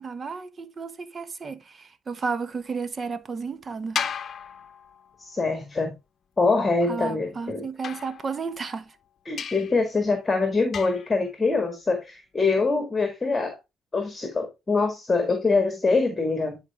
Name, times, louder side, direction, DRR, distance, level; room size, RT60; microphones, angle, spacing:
voice 1, 0.0-4.0 6.9-8.9, right 5 dB, 40° right, 0.9 m, -33 dB
sound 1, 4.0-5.3 7.8-8.7 9.4-9.9 10.7-11.2, left 7 dB, 50° left, 0.8 m, -34 dB
voice 2, 5.2-5.9 6.4-7.7 9.3-13.6 13.9-16.6, left 3 dB, 25° left, 1.7 m, -24 dB
9.7 x 4.4 x 3.3 m
cardioid pair, 90°, 0 cm